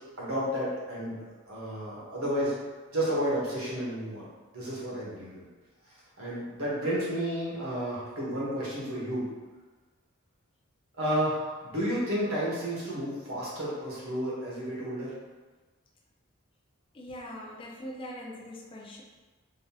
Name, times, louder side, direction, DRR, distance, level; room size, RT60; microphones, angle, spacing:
voice 1, 0.2-1.2 1.5-2.5 2.9-4.3 4.5-5.5 5.9-9.3 11.0-15.1, equal, 75° right, -7 dB, 1.4 m, -31 dB
voice 2, 17.0-19.0, equal, 25° left, -1 dB, 0.4 m, -42 dB
3.8 x 3.0 x 2.9 m, 1.3 s
head